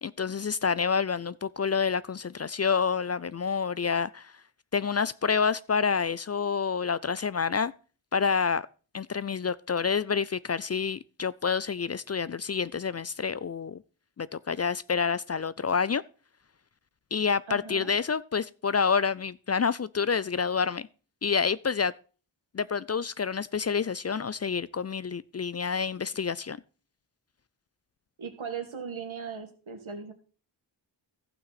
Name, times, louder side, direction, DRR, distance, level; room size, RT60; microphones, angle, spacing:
voice 1, 0.0-4.3 4.7-7.7 8.1-8.7 8.9-13.8 14.2-16.0 17.1-20.9 21.2-21.9 22.5-26.6, left 6 dB, 35° left, 0.4 m, -28 dB
voice 2, 17.5-17.9 28.2-30.1, right 6 dB, 85° right, 2.1 m, -38 dB
15.0 x 5.9 x 4.1 m
cardioid pair, 45°, 47 cm